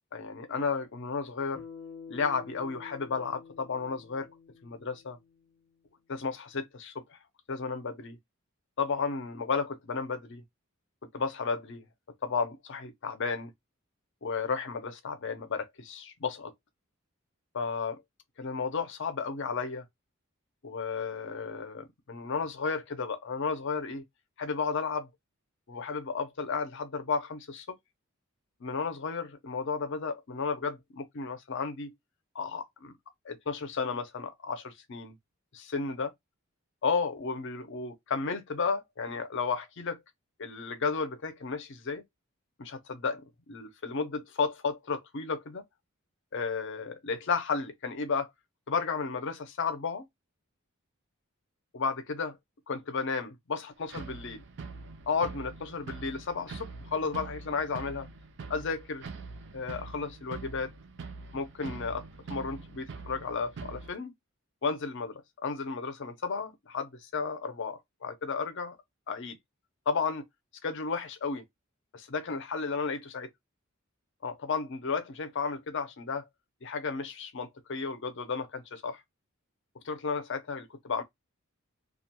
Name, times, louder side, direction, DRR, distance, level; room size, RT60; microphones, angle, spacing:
voice 1, 0.1-1.6 2.1-4.4 4.6-5.2 6.1-7.2 7.5-8.2 8.8-10.4 11.1-11.8 12.2-13.5 14.2-16.5 17.5-18.0 18.4-19.8 20.6-24.0 24.4-25.1 25.7-27.8 28.6-31.9 32.3-32.9 33.2-35.2 35.5-36.1 36.8-40.0 40.4-42.0 42.6-45.6 46.3-48.3 48.7-50.0 51.7-52.4 52.7-54.4 55.1-58.1 58.5-59.0 59.5-60.7 61.3-62.0 62.3-64.1 64.6-68.8 69.1-69.4 69.9-70.2 70.6-71.4 71.9-73.3 74.2-76.3 76.6-79.0 79.8-81.0, left 5 dB, 60° left, 0.6 m, -33 dB
Bass guitar, 1.5-6.0, left 5 dB, 5° left, 0.6 m, -49 dB
sound 1, 53.9-63.9, right 4 dB, 55° right, 0.4 m, -44 dB
2.3 x 2.2 x 2.8 m
head